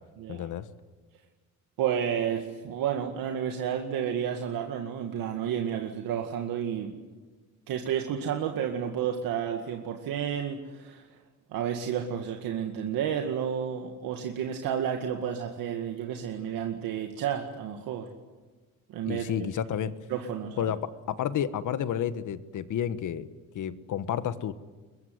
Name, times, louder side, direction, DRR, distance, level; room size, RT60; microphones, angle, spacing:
voice 1, 0.3-0.7 19.0-19.9 20.6-23.3 23.5-24.5, left 9 dB, 60° left, 12 dB, 1.4 m, -31 dB
voice 2, 1.8-7.0 7.7-11.1 11.5-18.1 18.9-19.2 20.1-20.7, right 8 dB, 80° right, 3 dB, 2.1 m, -31 dB
23.0 x 21.5 x 9.6 m, 1.3 s
cardioid pair, 115°, 34 cm